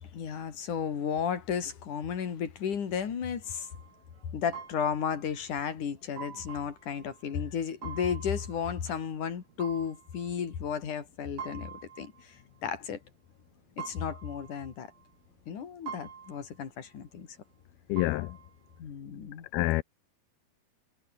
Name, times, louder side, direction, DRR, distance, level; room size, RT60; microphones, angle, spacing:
voice 1, 0.0-3.7 4.3-13.0 13.8-14.9 15.5-17.4 18.8-19.5, left 7 dB, 55° left, 4.4 m, -34 dB
sound 1, 3.4-18.8, right 7 dB, 70° right, 5.6 m, -47 dB
voice 2, 17.9-18.4 19.5-19.8, left 21 dB, 85° left, 2.5 m, -27 dB
omnidirectional pair, 4.4 m